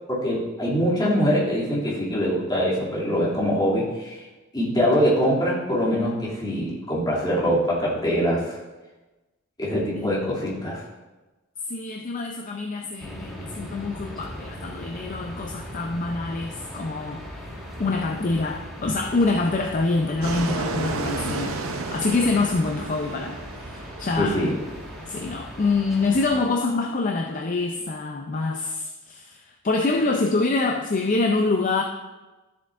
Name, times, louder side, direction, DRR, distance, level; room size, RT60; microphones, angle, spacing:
voice 1, 0.1-4.2 4.5-8.6 9.6-10.8 24.2-24.5, equal, 20° left, -7 dB, 2.5 m, -23 dB
voice 2, 10.0-10.3 11.7-17.3 17.8-24.5 25.1-31.8, left 3 dB, 40° left, 3 dB, 0.5 m, -26 dB
sound 1, 13.0-26.4, equal, ahead, 1.6 m, -39 dB
Fixed-wing aircraft airplane, 20.2-25.4, right 3 dB, 80° right, 0.7 m, -33 dB
12.5 x 7.4 x 2.5 m, 1.1 s
head